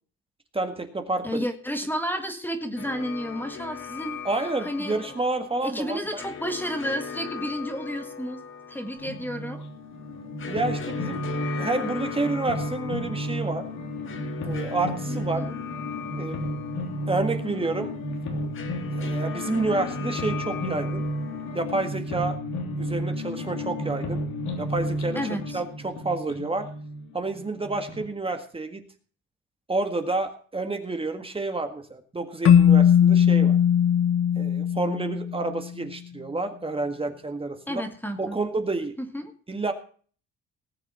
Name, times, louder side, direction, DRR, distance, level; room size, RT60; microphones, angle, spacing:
voice 1, 0.5-1.5 4.2-6.2 10.5-11.2 11.6-13.7 14.4-15.5 16.1-16.4 17.1-18.0 19.0-21.1 21.5-22.4 22.8-24.2 24.6-25.2 25.5-26.7 27.1-28.8 29.7-33.6 34.4-37.8 38.2-38.9 39.5-39.7, right 3 dB, 20° right, 6 dB, 1.8 m, -29 dB
voice 2, 1.2-4.2 4.6-5.1 5.6-8.4 8.7-9.6 15.1-15.5 25.2-25.6 37.7-38.4 39.0-39.3, equal, 5° left, 6 dB, 1.8 m, -31 dB
sound 1, 2.8-21.7, left 6 dB, 45° left, 1.8 m, -39 dB
sound 2, 9.0-28.1, equal, 80° left, 3.2 m, -32 dB
Keyboard (musical), 32.4-35.7, left 9 dB, 60° left, 1.1 m, -19 dB
19.0 x 7.2 x 5.6 m, 0.43 s
cardioid pair, 110°, 29 cm